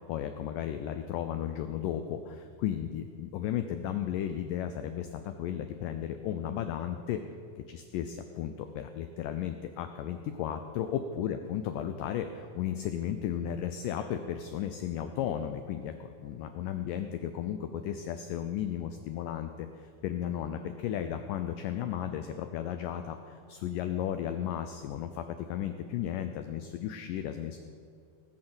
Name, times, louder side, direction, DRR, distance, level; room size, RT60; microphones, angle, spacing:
voice 1, 0.0-7.2 7.7-27.6, left 10 dB, 90° left, 8 dB, 1.9 m, -34 dB
18.5 x 6.5 x 7.8 m, 2.3 s
omnidirectional pair, 4.6 m